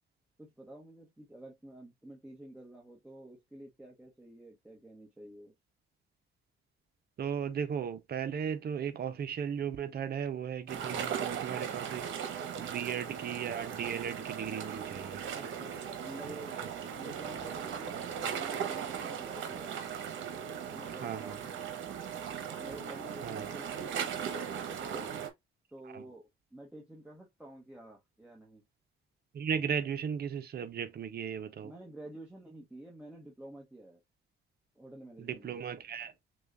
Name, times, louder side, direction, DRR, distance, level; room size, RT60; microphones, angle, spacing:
voice 1, 0.4-5.5 15.3-16.6 17.0-19.7 20.7-21.6 22.5-24.6 24.8-25.1 25.7-28.6 31.6-34.0 34.7-35.6, right 1 dB, 5° right, 1.1 m, -50 dB
voice 2, 7.2-15.3 16.3-16.4 21.0-21.4 23.2-23.5 25.9-26.0 29.3-31.7 35.2-36.1, right 7 dB, 55° right, 0.8 m, -36 dB
sound 1, 10.7-25.3, right 8 dB, 75° right, 1.0 m, -38 dB
6.1 x 2.4 x 2.5 m
cardioid pair, 90°, 20 cm